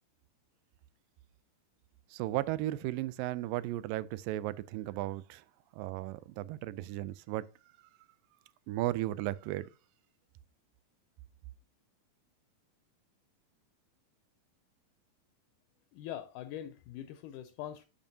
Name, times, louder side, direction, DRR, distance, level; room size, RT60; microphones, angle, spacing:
voice 1, 2.1-5.4 5.7-7.5 8.7-9.7, right 15 dB, 85° right, 2.2 m, -35 dB
voice 2, 15.9-17.8, left 11 dB, 80° left, 2.0 m, -43 dB
11.5 x 5.4 x 2.7 m
omnidirectional pair, 3.9 m